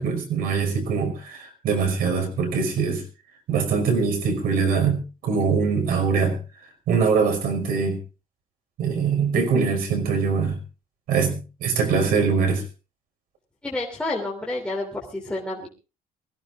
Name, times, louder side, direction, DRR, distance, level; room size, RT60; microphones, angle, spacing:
voice 1, 0.0-3.0 3.5-6.4 6.9-8.0 8.8-10.6 11.1-12.6, right 5 dB, 80° right, 6 dB, 5.4 m, -23 dB
voice 2, 13.6-15.7, left 2 dB, 5° left, -3 dB, 3.1 m, -29 dB
24.0 x 16.5 x 2.5 m, 0.32 s
cardioid pair, 140°, 15 cm